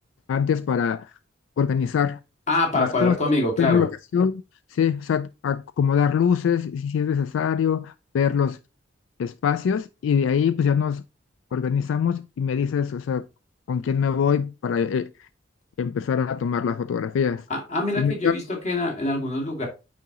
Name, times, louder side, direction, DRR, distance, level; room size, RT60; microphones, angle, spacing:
voice 1, 0.3-1.1 1.6-2.2 2.7-3.2 3.6-4.4 4.7-8.6 9.2-11.0 11.5-13.2 13.7-15.1 15.8-17.4 18.0-18.3, left 7 dB, 75° left, 0.3 m, -23 dB
voice 2, 2.5-3.9 17.5-19.7, left 2 dB, 35° left, 2.0 m, -24 dB
9.1 x 3.8 x 2.9 m
head